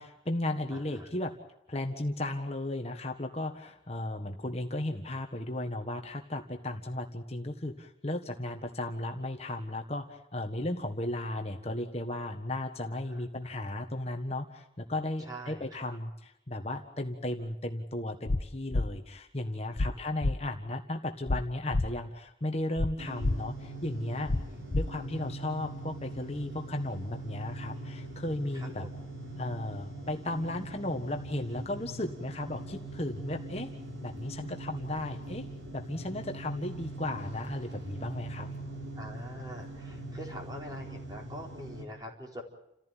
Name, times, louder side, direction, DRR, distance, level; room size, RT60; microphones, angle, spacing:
voice 1, 0.0-1.4 1.7-24.3 24.7-28.9 29.4-33.7 34.0-35.5 35.7-38.5, left 1 dB, 35° left, 4 dB, 1.5 m, -35 dB
voice 2, 0.7-1.1 12.9-13.5 15.2-16.0 19.9-20.0 28.5-28.9 38.9-42.4, equal, 20° right, 0 dB, 4.4 m, -44 dB
sound 1, 18.3-18.4 18.7-18.9 19.8-19.9 20.2-20.3 21.3-21.4 21.7-21.9 22.8-22.9 23.2-23.3 24.3-24.4 24.7-24.8, left 2 dB, 80° left, 0.8 m, -27 dB
sound 2, 23.0-41.8, right 2 dB, 85° right, 3.9 m, -42 dB
29.5 x 15.0 x 9.2 m, 0.83 s
head